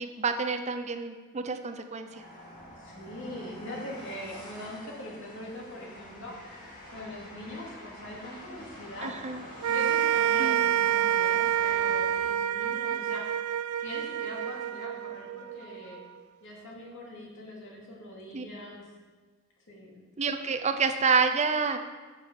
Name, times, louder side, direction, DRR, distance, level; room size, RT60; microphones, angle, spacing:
voice 1, 0.0-2.2 9.0-9.4 10.4-10.7 18.3-18.4 20.2-21.8, right 5 dB, 30° right, 7 dB, 0.6 m, -28 dB
Train, 2.0-12.5, left 1 dB, 40° left, 2.8 m, -47 dB
voice 2, 2.8-6.3 6.9-9.1 9.7-13.3 13.8-16.0 16.4-18.8 19.7-20.0, left 1 dB, 60° left, -3 dB, 2.4 m, -42 dB
sound 1, 9.6-16.0, right 10 dB, 85° right, 0.4 m, -27 dB
9.6 x 5.7 x 6.0 m, 1.4 s
head